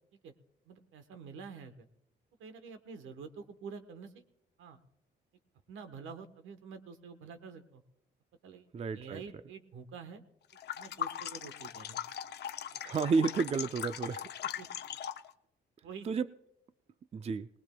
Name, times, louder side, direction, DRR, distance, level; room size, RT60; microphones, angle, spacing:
voice 1, 0.7-1.9 2.4-4.2 4.6-4.8 5.7-7.8 8.4-8.7 8.9-10.2 10.8-12.0 12.7-12.8 14.4-14.7 15.8-16.1, right 5 dB, 80° right, 9 dB, 1.1 m, -48 dB
voice 2, 8.7-9.2 12.8-14.3 16.1-16.3 17.1-17.5, right 5 dB, 30° right, 12 dB, 0.4 m, -31 dB
sound 1, 10.5-15.3, left 9 dB, 60° left, 0.6 m, -40 dB
20.0 x 19.5 x 2.2 m, 0.82 s
cardioid pair, 90°, 20 cm